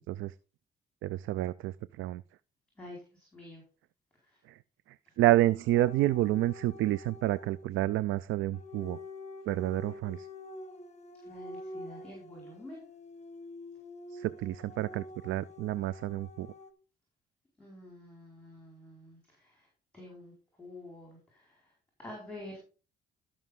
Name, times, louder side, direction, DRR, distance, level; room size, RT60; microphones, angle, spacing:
voice 1, 1.0-2.2 4.5-4.6 5.2-9.0 9.5-10.3 14.1-16.5, right 15 dB, 80° right, 0.4 m, -29 dB
voice 2, 2.8-3.6 11.2-12.8 17.6-19.7 19.9-20.3 20.6-21.6 22.0-22.6, left 1 dB, 5° left, 4.7 m, -48 dB
sound 1, 5.7-7.7 8.5-16.7, left 2 dB, 35° left, 1.1 m, -47 dB
13.5 x 6.1 x 3.7 m
cardioid pair, 90°, 20 cm